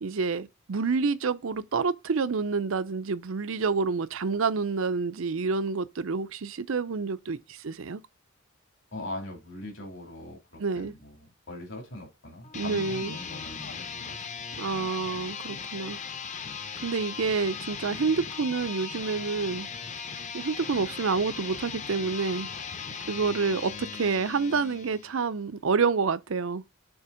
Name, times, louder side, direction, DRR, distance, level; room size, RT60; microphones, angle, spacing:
voice 1, 0.0-8.0 10.6-10.9 12.5-13.2 14.6-16.0 16.8-19.7 20.3-22.5 23.1-26.6, right 4 dB, 75° right, 0.6 m, -28 dB
voice 2, 8.9-14.3 22.5-22.9, left 1 dB, 60° left, 2.9 m, -41 dB
sound 1, 12.4-25.2, left 6 dB, 35° left, 0.8 m, -38 dB
7.2 x 3.4 x 4.9 m
head